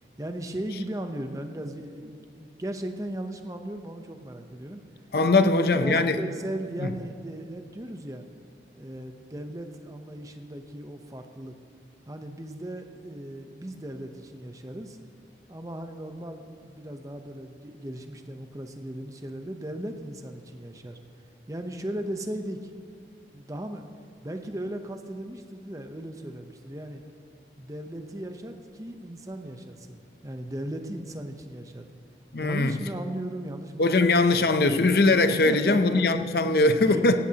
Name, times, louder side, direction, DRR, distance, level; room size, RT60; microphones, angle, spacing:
voice 1, 0.2-4.8 5.3-8.2 8.8-11.5 12.1-15.0 15.5-21.0 21.5-22.7 23.3-23.9 24.2-27.0 27.6-31.8 32.4-34.1 35.4-36.0 36.8-37.0, right 1 dB, 20° right, 6 dB, 0.8 m, -37 dB
voice 2, 5.1-6.2 6.8-6.9 32.3-32.8 33.8-37.2, left 2 dB, 60° left, 9 dB, 0.6 m, -21 dB
17.5 x 16.0 x 2.9 m, 2.2 s
head